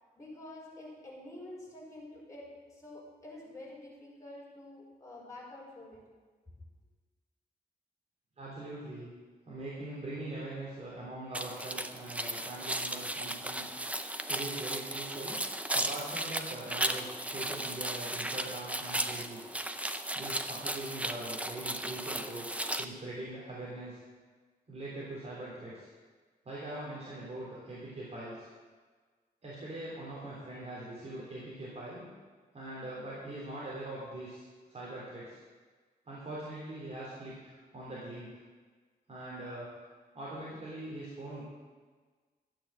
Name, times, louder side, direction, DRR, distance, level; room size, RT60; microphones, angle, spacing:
voice 1, 0.2-6.0 6.5-6.6, left 1 dB, 20° left, -5 dB, 4.9 m, -48 dB
voice 2, 8.4-9.1 9.5-13.8 14.3-15.4 15.7-19.4 20.1-22.5 22.8-24.0 24.7-25.9 26.5-28.5 29.4-32.1 32.5-35.4 36.1-38.4 39.1-39.7 40.1-41.4, right 1 dB, 40° right, -7 dB, 3.6 m, -42 dB
sound 1, 11.3-22.8, right 1 dB, 10° right, 0.6 m, -35 dB
13.0 x 8.9 x 7.7 m, 1.4 s
wide cardioid pair, 150°, 17 cm